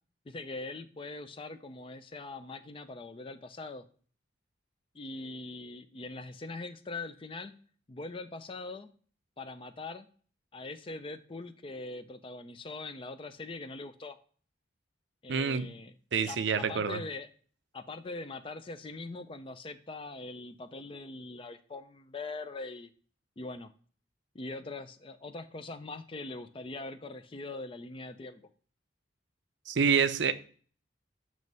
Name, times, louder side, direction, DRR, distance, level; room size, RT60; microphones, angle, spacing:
voice 1, 0.3-3.8 4.9-7.5 7.9-8.9 9.4-10.1 10.5-14.2 15.2-15.9 16.2-17.3 17.7-22.9 23.4-23.7 24.3-28.4, left 3 dB, 25° left, 0.4 m, -42 dB
voice 2, 15.3-15.7 16.1-17.0 29.7-30.3, right 6 dB, 65° right, 0.5 m, -27 dB
7.5 x 3.2 x 5.2 m
head